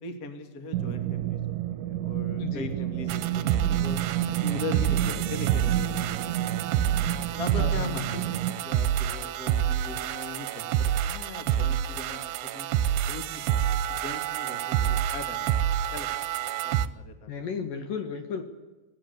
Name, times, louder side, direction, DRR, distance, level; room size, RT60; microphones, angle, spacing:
voice 1, 0.0-4.0 4.4-6.4 6.7-6.9 7.4-12.7 13.1-15.5 15.9-16.3 16.6-17.3, left 2 dB, 30° left, 6 dB, 2.0 m, -40 dB
sound 1, 0.7-8.5, right 12 dB, 60° right, 2.8 m, -30 dB
voice 2, 2.4-2.8 7.6-8.2 17.3-18.4, left 6 dB, 60° left, 7 dB, 3.0 m, -34 dB
sound 2, 3.1-16.9, right 10 dB, 75° right, 2.8 m, -28 dB
26.5 x 18.0 x 8.3 m, 1.1 s
omnidirectional pair, 4.8 m